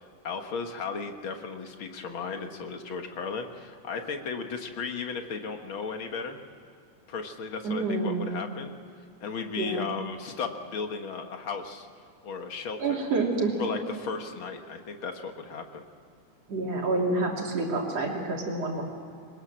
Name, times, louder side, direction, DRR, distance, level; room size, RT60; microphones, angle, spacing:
voice 1, 0.2-6.4 7.1-8.7 9.2-11.9 12.2-13.0 13.6-15.8, left 5 dB, 50° left, 5 dB, 1.9 m, -35 dB
voice 2, 7.6-8.3 9.6-9.9 12.8-13.8 16.5-18.8, right 3 dB, 55° right, -1 dB, 4.1 m, -28 dB
23.0 x 20.0 x 7.5 m, 2.5 s
omnidirectional pair, 3.6 m